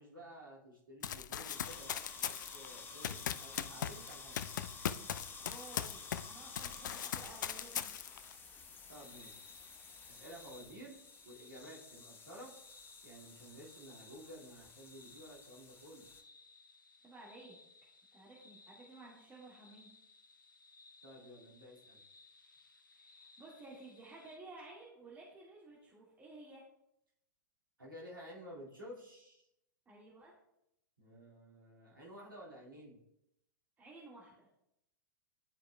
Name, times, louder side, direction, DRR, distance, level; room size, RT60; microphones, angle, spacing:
voice 1, 0.0-4.5 8.9-9.4 10.1-11.0 11.2-12.6 13.0-16.1 21.0-22.0 27.8-29.5 31.0-33.0, equal, 85° right, -5 dB, 2.1 m, -53 dB
Run, 1.0-6.3 6.6-8.3, left 9 dB, 65° left, 0.4 m, -39 dB
sound 1, 1.5-16.2, left 4 dB, 20° left, 0.9 m, -52 dB
voice 2, 5.4-7.9 17.0-17.5 18.1-19.9 22.9-26.6 29.8-30.3 33.8-34.5, right 2 dB, 15° right, -6 dB, 1.6 m, -54 dB
sound 2, 8.9-24.4, left 3 dB, 85° left, 0.8 m, -61 dB
11.5 x 4.7 x 2.2 m, 0.81 s
figure-of-eight pair, 100°, 11 cm